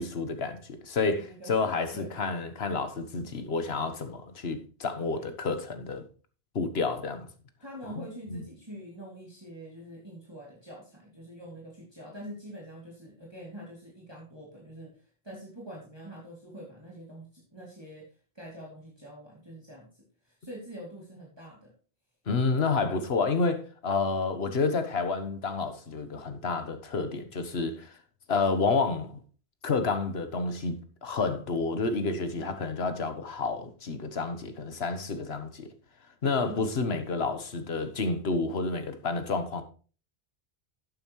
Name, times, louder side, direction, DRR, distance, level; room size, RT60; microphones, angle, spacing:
voice 1, 0.0-6.0 6.5-7.3 8.0-8.1 8.3-8.4 22.3-28.0 28.3-29.2 29.6-30.8 31.0-35.7 36.2-39.6, left 4 dB, 75° left, 1.5 m, -29 dB
voice 2, 1.2-1.5 1.9-2.1 5.0-5.2 7.6-14.9 15.2-18.1 18.3-21.7 22.5-22.6 32.3-32.6 36.4-36.6, equal, 25° right, 2.8 m, -45 dB
11.5 x 9.0 x 3.1 m
omnidirectional pair, 1.0 m